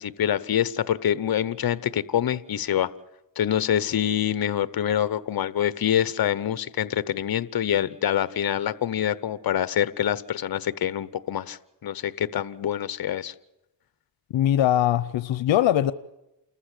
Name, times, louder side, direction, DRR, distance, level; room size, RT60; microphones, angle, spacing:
voice 1, 0.0-2.9 3.4-13.3, left 10 dB, 55° left, 16 dB, 0.9 m, -26 dB
voice 2, 14.3-15.9, left 12 dB, 85° left, 14 dB, 0.7 m, -21 dB
29.0 x 14.0 x 8.3 m, 0.94 s
cardioid pair, 85°, 44 cm